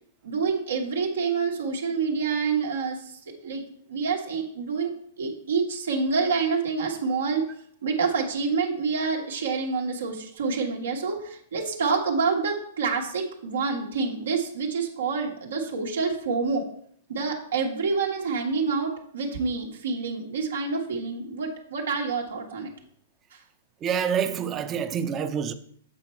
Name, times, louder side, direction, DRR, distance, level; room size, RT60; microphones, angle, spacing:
voice 1, 0.2-3.6 3.9-7.4 7.8-16.7 17.1-22.7 23.3-23.4, right 4 dB, 90° right, 1.3 m, -27 dB
voice 2, 23.8-25.5, right 7 dB, 20° right, 0.5 m, -27 dB
7.5 x 4.3 x 4.4 m
hypercardioid pair, 150°, 0 cm